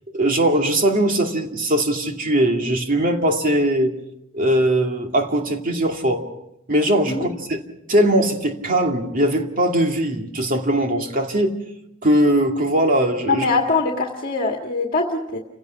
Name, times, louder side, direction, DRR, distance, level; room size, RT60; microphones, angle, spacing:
voice 1, 0.1-3.9 4.3-6.3 6.7-7.6 7.9-11.6 12.0-13.5, right 1 dB, 45° right, 2.5 m, -20 dB
voice 2, 13.3-15.4, left 3 dB, 45° left, 1.8 m, -22 dB
30.0 x 17.0 x 5.8 m
head